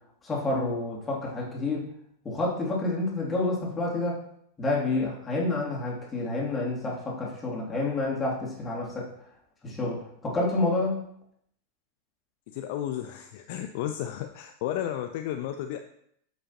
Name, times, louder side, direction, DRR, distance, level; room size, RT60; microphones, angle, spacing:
voice 1, 0.2-1.8 2.2-4.2 4.6-9.1 9.6-11.0, left 2 dB, 15° left, -4 dB, 2.8 m, -29 dB
voice 2, 12.5-15.8, left 11 dB, 50° left, 7 dB, 0.5 m, -33 dB
8.6 x 7.4 x 2.9 m, 0.71 s
figure-of-eight pair, 90°, 0 cm